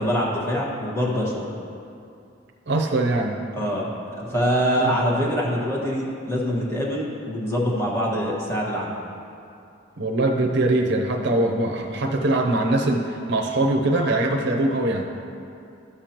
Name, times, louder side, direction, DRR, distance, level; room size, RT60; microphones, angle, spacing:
voice 1, 0.0-1.5 3.5-8.9, equal, 15° left, -5 dB, 1.5 m, -24 dB
voice 2, 2.7-3.4 4.7-4.9 10.0-15.1, right 2 dB, 60° right, 1 dB, 0.7 m, -22 dB
13.0 x 6.9 x 3.0 m, 2.6 s
head